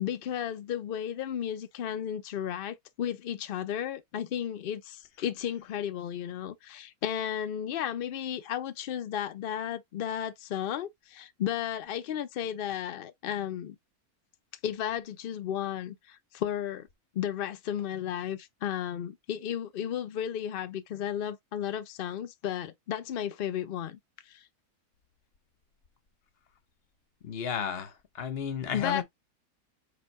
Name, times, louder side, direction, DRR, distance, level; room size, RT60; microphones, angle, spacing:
voice 1, 0.0-13.8 14.6-16.9 17.1-24.5 28.7-29.0, left 10 dB, 90° left, 0.4 m, -34 dB
voice 2, 27.2-29.0, left 7 dB, 50° left, 0.9 m, -33 dB
4.9 x 2.3 x 4.5 m
omnidirectional pair, 1.6 m